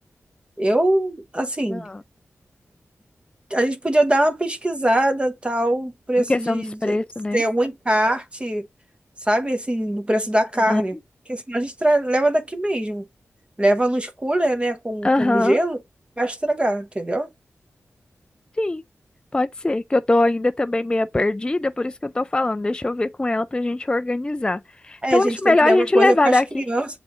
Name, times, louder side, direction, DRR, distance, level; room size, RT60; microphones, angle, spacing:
voice 1, 0.6-1.9 3.5-7.0 7.3-8.7 9.2-10.9 11.3-13.0 13.6-15.8 16.2-17.3 25.0-26.9, right 1 dB, 20° right, 0.8 m, -22 dB
voice 2, 1.7-2.0 6.2-7.4 10.7-10.8 15.0-15.6 18.6-18.8 19.3-26.6, left 2 dB, 20° left, 0.3 m, -21 dB
6.8 x 2.5 x 3.0 m
cardioid pair, 55°, 5 cm